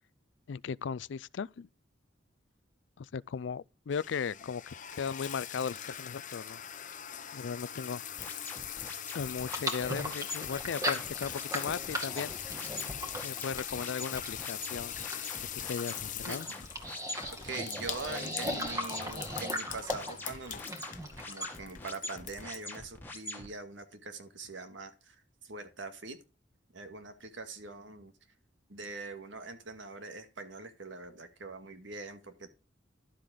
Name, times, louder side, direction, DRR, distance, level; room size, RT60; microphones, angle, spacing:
voice 1, 0.5-1.7 3.0-4.6 5.0-6.6 7.3-8.0 9.1-12.3 13.2-15.2 15.7-16.5, left 6 dB, 65° left, 0.4 m, -37 dB
sound 1, 3.9-22.8, left 10 dB, 45° left, 0.9 m, -42 dB
sound 2, 8.2-23.5, left 1 dB, 10° left, 1.9 m, -44 dB
sound 3, 9.5-21.6, equal, 20° right, 2.2 m, -38 dB
voice 2, 17.4-20.6 21.3-25.2 25.4-26.2 26.7-28.1 28.7-32.5, right 3 dB, 70° right, 2.1 m, -43 dB
12.0 x 7.7 x 3.8 m
head